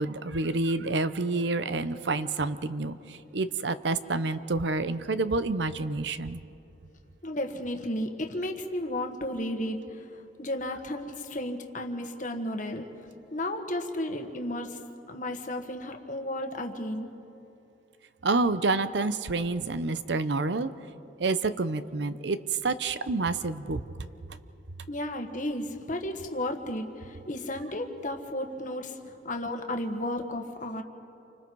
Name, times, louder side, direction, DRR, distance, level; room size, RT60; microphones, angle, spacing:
voice 1, 0.0-3.0 3.3-6.4 18.2-20.7 21.2-22.4 22.6-23.8, right 3 dB, 70° right, 13 dB, 0.7 m, -28 dB
voice 2, 7.2-9.8 10.4-12.9 13.3-14.8 15.1-17.1 24.9-29.0 29.2-30.8, left 1 dB, 45° left, 4 dB, 1.6 m, -33 dB
29.0 x 25.5 x 4.7 m, 2.7 s
head